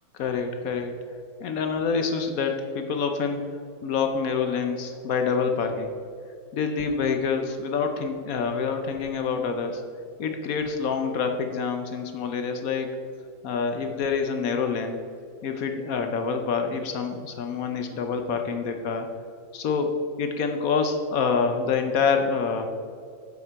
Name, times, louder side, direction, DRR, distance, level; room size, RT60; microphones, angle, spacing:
voice 1, 0.1-0.9 1.4-3.5 3.8-5.9 6.5-9.8 10.2-12.9 13.4-15.0 15.4-19.1 19.5-19.9 20.2-22.7, left 5 dB, 70° left, 5 dB, 0.8 m, -26 dB
8.3 x 7.3 x 4.6 m, 2.4 s
omnidirectional pair, 2.3 m